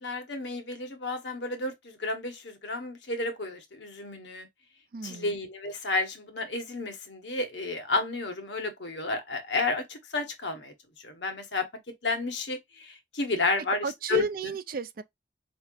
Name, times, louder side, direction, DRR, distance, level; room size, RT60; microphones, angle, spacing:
voice 1, 0.0-4.5 5.0-10.7 11.0-11.6 12.0-14.5, left 3 dB, 70° left, 1.2 m, -31 dB
voice 2, 4.9-5.4 13.8-15.0, right 5 dB, 50° right, 0.4 m, -33 dB
4.5 x 3.4 x 2.4 m
head